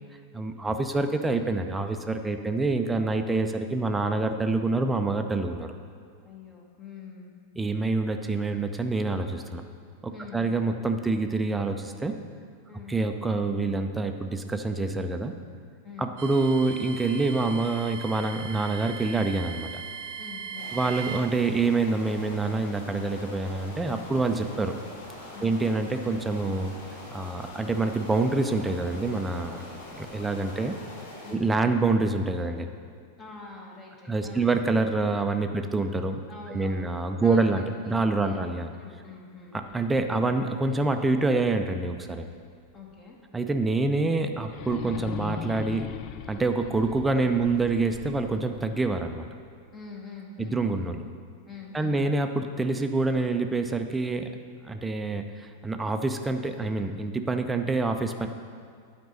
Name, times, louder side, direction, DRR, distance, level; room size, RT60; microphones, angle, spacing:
voice 1, 0.3-5.7 7.6-9.6 10.0-12.2 12.9-15.3 16.0-19.7 20.7-24.7 25.4-26.7 27.1-29.6 30.0-30.7 31.3-32.7 34.1-36.2 36.5-38.7 39.7-42.3 43.3-45.9 46.3-49.3 50.4-51.0 51.7-54.3 54.6-58.3, right 3 dB, 10° right, 6 dB, 0.6 m, -26 dB
voice 2, 6.2-7.3 10.1-10.5 12.7-12.9 15.8-16.1 20.2-20.8 25.3-25.6 31.2-31.4 33.2-34.5 36.3-38.5 38.7-39.6 42.7-43.2 49.7-50.7 51.5-52.0, left 5 dB, 25° left, -1 dB, 1.4 m, -44 dB
sound 1, 16.2-21.2, right 6 dB, 50° right, 0.6 m, -39 dB
sound 2, 20.5-31.3, left 1 dB, 60° left, 1.8 m, -43 dB
sound 3, 39.5-42.5 42.9-43.0 44.4-49.5, left 10 dB, 40° left, 0.4 m, -41 dB
9.3 x 5.1 x 6.7 m, 2.1 s
figure-of-eight pair, 90°, 0 cm